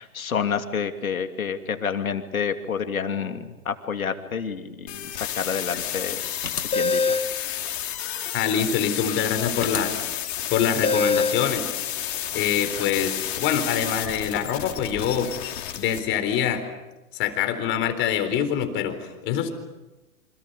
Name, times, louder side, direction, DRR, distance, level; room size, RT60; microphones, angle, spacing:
voice 1, 0.0-6.2 6.7-7.2, left 6 dB, 75° left, 7 dB, 2.9 m, -29 dB
sound 1, 4.9-16.0, left 11 dB, 45° left, 4.3 m, -31 dB
sound 2, 6.4-7.3 9.6-9.8 10.8-11.4, left 4 dB, 90° left, 2.0 m, -23 dB
voice 2, 8.3-10.0 10.5-11.7 12.3-15.3 15.8-16.6 17.1-19.5, left 8 dB, 25° left, 8 dB, 4.0 m, -25 dB
28.5 x 26.5 x 6.8 m, 1.1 s
figure-of-eight pair, 120°, 43 cm